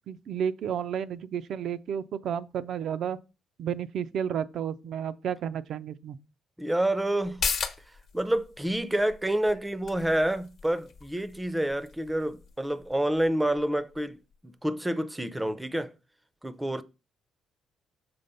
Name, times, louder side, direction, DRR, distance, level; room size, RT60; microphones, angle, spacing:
voice 1, 0.1-3.2 3.6-6.2, right 8 dB, 65° right, 0.5 m, -32 dB
voice 2, 6.6-7.4 8.1-15.9 16.4-16.8, right 1 dB, 10° right, 0.5 m, -28 dB
sound 1, 7.2-14.4 14.7-14.8, left 6 dB, 55° left, 1.0 m, -38 dB
6.9 x 3.3 x 5.4 m
cardioid pair, 120°, 0 cm